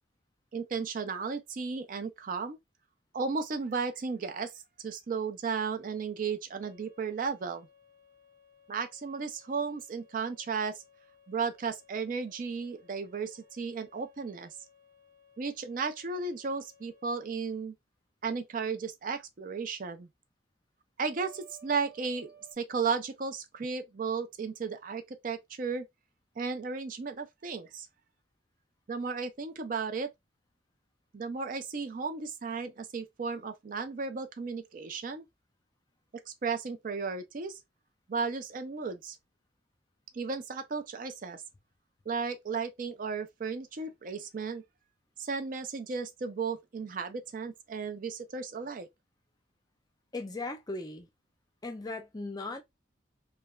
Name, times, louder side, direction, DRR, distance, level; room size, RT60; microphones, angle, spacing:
voice 1, 0.5-2.6 3.1-4.5 4.8-7.7 8.7-10.8 11.3-14.5 15.4-17.7 18.2-20.1 21.0-22.3 22.6-25.9 26.4-27.9 28.9-30.1 31.1-35.2 36.4-37.6 38.1-39.2 40.1-41.4 42.1-44.6 45.2-48.9, right 5 dB, 45° right, 0.4 m, -34 dB
sound 1, 6.6-17.3 21.1-22.5, right 1 dB, 65° right, 1.1 m, -60 dB
voice 2, 50.1-51.1 51.6-52.6, left 2 dB, 20° left, 0.4 m, -37 dB
3.1 x 2.2 x 2.2 m
head